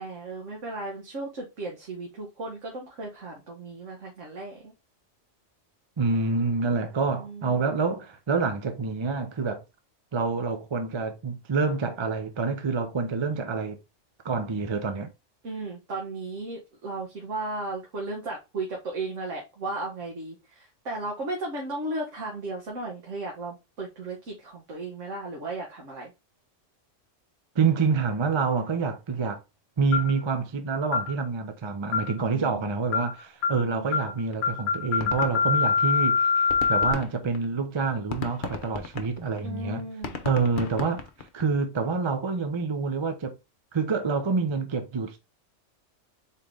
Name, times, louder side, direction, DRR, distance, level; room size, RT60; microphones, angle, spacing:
voice 1, 0.0-4.7 7.1-7.8 15.4-26.1 32.2-32.8 33.6-34.2 39.4-40.2, right 2 dB, 75° right, 1.5 m, -35 dB
voice 2, 6.0-9.6 10.1-13.8 14.2-15.1 27.6-29.4 29.8-39.8 40.2-41.0 41.3-43.3 43.7-45.2, right 4 dB, 35° right, 0.5 m, -27 dB
sound 1, 29.9-30.2 30.9-31.1 31.9-32.2 32.9-33.1 33.4-33.6 33.9-34.1 34.4-36.9, left 5 dB, 80° left, 0.9 m, -24 dB
sound 2, 34.0-34.1 34.3-34.5 34.7-36.1 36.4-41.6, left 5 dB, 50° left, 0.8 m, -37 dB
4.2 x 3.8 x 3.3 m
omnidirectional pair, 1.3 m